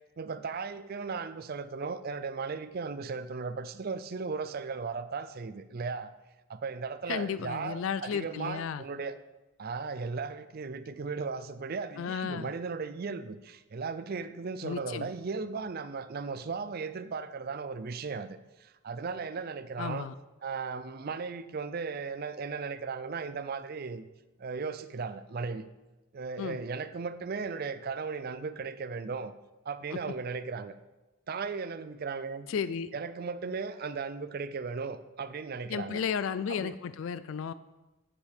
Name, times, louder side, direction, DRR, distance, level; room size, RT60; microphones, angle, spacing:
voice 1, 0.2-6.1 6.5-9.2 9.6-20.1 20.4-24.1 24.4-25.7 26.1-29.3 29.7-30.7 31.3-32.5 32.9-36.0 36.5-36.7, right 4 dB, 45° right, 12 dB, 0.4 m, -36 dB
voice 2, 7.1-8.8 12.0-12.5 14.6-15.1 19.8-20.1 26.4-26.6 32.5-32.9 35.7-37.5, left 7 dB, 65° left, 14 dB, 0.3 m, -33 dB
9.5 x 9.0 x 3.6 m, 1.1 s
head